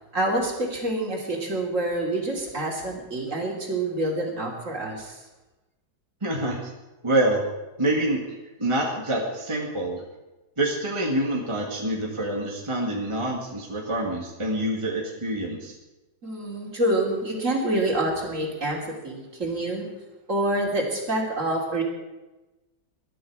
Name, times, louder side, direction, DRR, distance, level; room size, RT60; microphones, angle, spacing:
voice 1, 0.1-5.2 16.2-19.9 20.3-21.8, right 1 dB, 35° right, 0 dB, 3.3 m, -27 dB
voice 2, 6.2-6.7 7.0-7.5 7.8-8.2 8.6-10.0 10.6-15.7, right 1 dB, 15° right, -1 dB, 1.8 m, -26 dB
20.0 x 12.5 x 4.8 m, 1.1 s
omnidirectional pair, 2.2 m